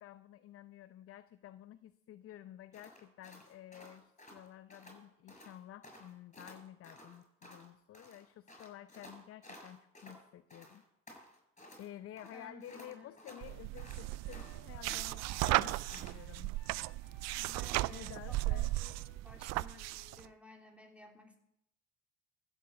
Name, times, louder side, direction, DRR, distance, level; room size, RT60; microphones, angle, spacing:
voice 1, 0.0-10.8 11.8-16.5 17.9-18.7, left 12 dB, 50° left, 13 dB, 0.7 m, -52 dB
sound 1, 2.7-5.0 5.3-5.6 5.8-7.7 7.9-10.2 10.5-11.9 12.2-14.6 14.9-16.2, left 1 dB, 25° left, 6.9 m, -54 dB
voice 2, 12.2-13.1 17.4-18.9 19.2-21.4, equal, 5° right, 1 dB, 3.1 m, -55 dB
Wind instrument woodwind instrument, 12.8-20.3, left 4 dB, 70° left, 4.0 m, -64 dB
sound 2, 13.4-20.2, right 18 dB, 65° right, 0.5 m, -36 dB
15.0 x 7.2 x 8.0 m, 0.81 s
hypercardioid pair, 60°, 29 cm